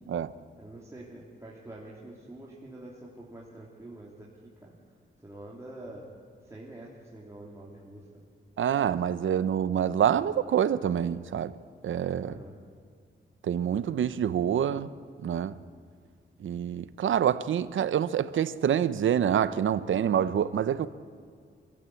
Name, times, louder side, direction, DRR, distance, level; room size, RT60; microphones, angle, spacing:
voice 1, 0.5-4.3 4.6-4.7 5.2-6.0 6.4-8.2 12.2-12.5, right 1 dB, 15° right, 3.0 m, -46 dB
voice 2, 8.6-11.5 11.8-12.3 13.4-14.9 15.2-15.5 16.4-20.9, right 9 dB, 90° right, 0.8 m, -26 dB
25.5 x 15.5 x 8.5 m
wide cardioid pair, 145°, 20 cm